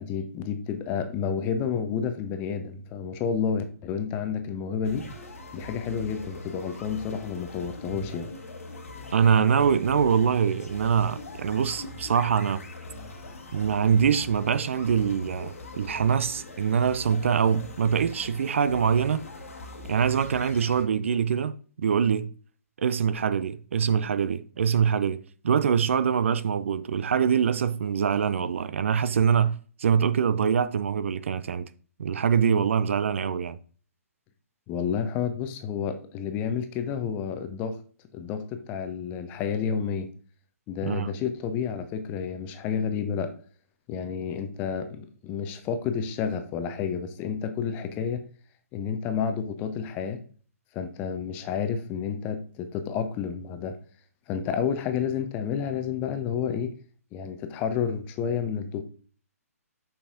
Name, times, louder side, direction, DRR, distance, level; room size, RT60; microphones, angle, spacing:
voice 1, 0.0-5.1 5.5-8.3 34.7-37.8 38.1-40.1 40.7-43.3 43.9-48.2 48.7-50.2 50.7-53.8 54.3-56.7 57.1-58.8, left 7 dB, 20° left, 0.7 m, -30 dB
sound 1, 4.8-20.8, left 2 dB, 60° left, 1.4 m, -42 dB
voice 2, 9.1-12.6 13.5-19.2 19.9-22.3 22.8-25.2 25.4-29.5 29.8-31.7 32.0-33.6 40.8-41.1, right 7 dB, 55° right, 0.4 m, -24 dB
6.9 x 5.6 x 2.5 m
figure-of-eight pair, 130°, 8 cm